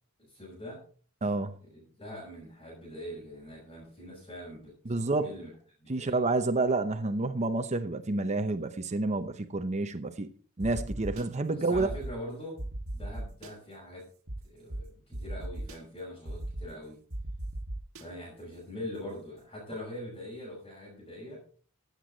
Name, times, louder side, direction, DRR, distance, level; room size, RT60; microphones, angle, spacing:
voice 1, 0.2-0.8 1.7-5.5 5.8-6.3 11.0-12.6 12.9-14.0 14.4-17.0 18.0-21.4, left 1 dB, 25° left, 5.8 m, -43 dB
voice 2, 1.2-1.5 4.9-5.3 5.9-10.3 10.6-11.9, right 2 dB, 30° right, 0.8 m, -29 dB
sound 1, 10.6-11.2 11.7-12.1 12.6-13.5 14.3-14.4 14.7-14.8 15.1-15.8 16.3-16.6 17.1-18.0, right 1 dB, 65° right, 1.7 m, -37 dB
15.0 x 7.9 x 4.0 m
head